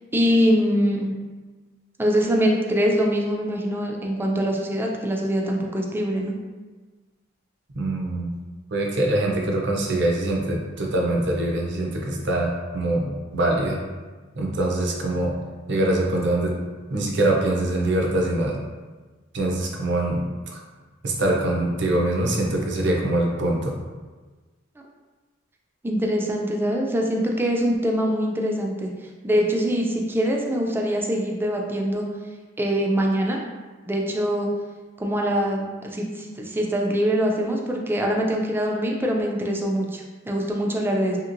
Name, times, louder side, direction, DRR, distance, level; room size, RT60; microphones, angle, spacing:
voice 1, 0.1-1.1 2.0-6.3 25.8-28.9 29.2-32.1 32.6-33.4 33.9-34.5 35.0-41.2, equal, 10° right, 0 dB, 0.3 m, -23 dB
voice 2, 7.8-8.3 8.7-13.8 14.4-15.3 15.7-16.6 16.9-18.6 19.3-20.2 20.5-20.6 21.0-23.7, right 1 dB, 60° right, 0 dB, 0.5 m, -23 dB
2.8 x 2.8 x 2.5 m, 1.3 s
head